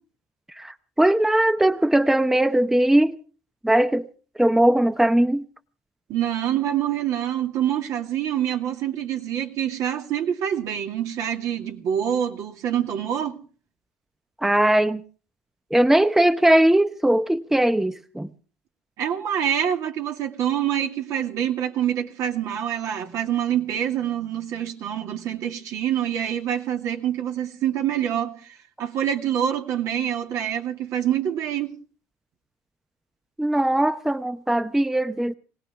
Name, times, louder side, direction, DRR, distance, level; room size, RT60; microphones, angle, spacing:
voice 1, 0.5-3.2 3.6-4.1 4.4-5.4 14.4-15.0 15.7-18.3 33.4-35.3, right 1 dB, 5° right, 0.8 m, -20 dB
voice 2, 6.1-13.4 19.0-31.7, right 10 dB, 65° right, 2.3 m, -26 dB
21.5 x 18.0 x 3.5 m
supercardioid pair, 75°, 6 cm